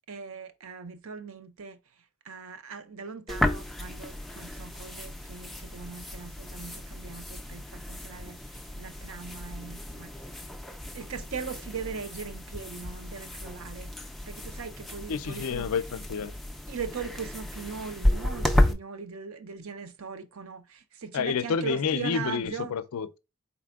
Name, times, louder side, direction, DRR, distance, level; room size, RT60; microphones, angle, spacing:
voice 1, 0.1-1.8 2.2-10.1 10.9-13.9 14.3-15.7 16.7-22.7, right 6 dB, 70° right, 0.6 m, -40 dB
sound 1, 3.3-18.7, left 1 dB, ahead, 0.3 m, -32 dB
voice 2, 15.1-16.3 21.1-23.2, left 6 dB, 80° left, 0.4 m, -29 dB
4.2 x 4.0 x 2.3 m
head